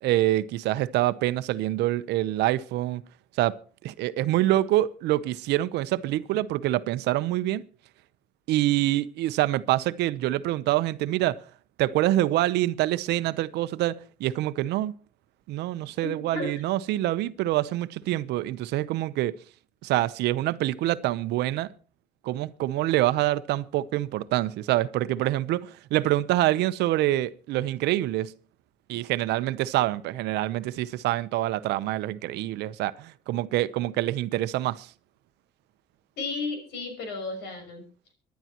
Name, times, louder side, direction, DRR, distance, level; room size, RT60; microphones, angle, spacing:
voice 1, 0.0-3.0 3.4-3.6 3.8-7.6 8.5-11.4 11.8-14.9 15.5-19.3 19.8-21.7 22.2-28.3 28.9-34.9, right 15 dB, 80° right, 0.8 m, -26 dB
voice 2, 16.0-16.6 36.2-37.8, left 3 dB, 80° left, 6.5 m, -33 dB
25.0 x 11.5 x 3.0 m
cardioid pair, 110°, 17 cm